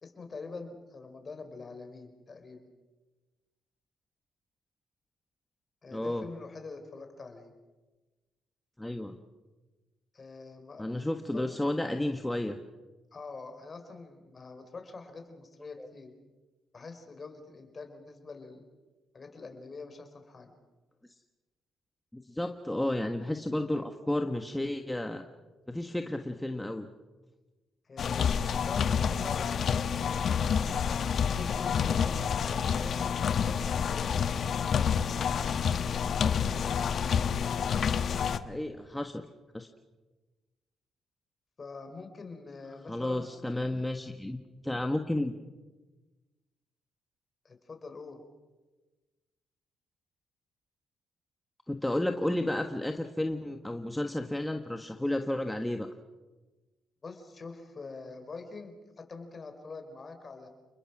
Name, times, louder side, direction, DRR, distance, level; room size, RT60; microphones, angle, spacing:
voice 1, 0.0-2.7 5.8-7.5 10.1-11.5 13.1-16.1 16.7-18.7 19.1-20.5 27.8-30.8 31.2-35.2 41.6-43.9 47.4-48.2 57.0-60.5, left 4 dB, 35° left, 6 dB, 4.8 m, -45 dB
voice 2, 5.9-6.2 8.8-9.2 10.8-12.6 15.8-15.9 22.1-25.2 25.7-26.9 38.4-39.2 39.5-39.7 42.9-44.4 44.6-45.3 51.7-55.9, left 1 dB, 5° left, 5 dB, 1.4 m, -32 dB
sound 1, 28.0-38.4, left 7 dB, 55° left, 1.1 m, -28 dB
30.0 x 21.0 x 6.2 m, 1.2 s
cardioid pair, 90°, 0 cm